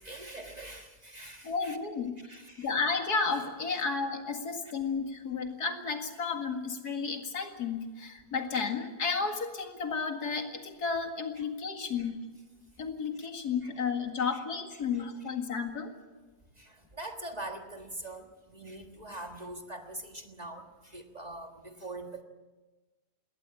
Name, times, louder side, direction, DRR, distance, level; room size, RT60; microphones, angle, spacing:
voice 1, 0.0-1.8 2.2-2.7 3.7-3.9 4.6-4.7 11.4-11.5 12.0-12.1 13.2-13.3 13.6-13.7 14.3-14.4 14.7-14.8 16.6-22.2, right 2 dB, 25° right, 4 dB, 1.6 m, -43 dB
voice 2, 1.4-2.2 2.6-12.2 12.8-15.9, left 5 dB, 75° left, 5 dB, 2.6 m, -32 dB
21.5 x 17.5 x 8.6 m, 1.2 s
omnidirectional pair, 1.7 m